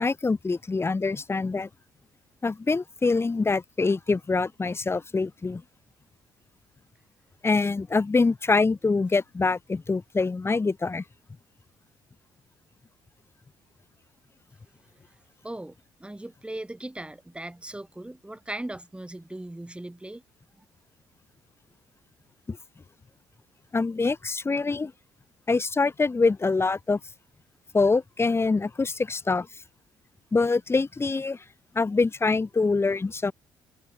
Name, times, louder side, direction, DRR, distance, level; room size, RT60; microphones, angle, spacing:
voice 1, 0.0-1.7 2.4-5.6 7.4-11.0 22.5-22.6 23.7-24.9 25.5-27.0 27.7-29.5 30.3-31.4 31.7-33.3, left 3 dB, 20° left, 1.3 m, -25 dB
voice 2, 15.4-20.2 20.6-20.7, right 1 dB, 10° right, 3.6 m, -38 dB
figure-of-eight pair, 45°, 11 cm